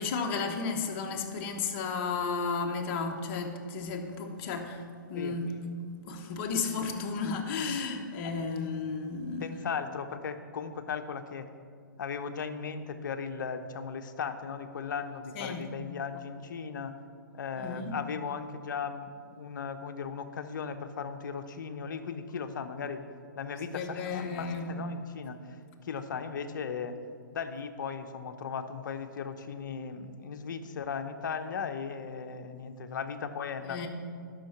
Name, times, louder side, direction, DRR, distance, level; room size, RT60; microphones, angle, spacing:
voice 1, 0.0-4.8 5.1-5.5 5.8-9.5 15.3-15.7 17.6-17.9 23.7-24.7 33.6-33.9, left 4 dB, 35° left, 3 dB, 1.2 m, -33 dB
voice 2, 9.4-11.5 12.0-16.9 17.3-23.0 23.4-27.0 27.3-33.9, left 6 dB, 60° left, 7 dB, 0.9 m, -37 dB
11.5 x 5.9 x 5.9 m, 2.2 s
hypercardioid pair, 140°, 11 cm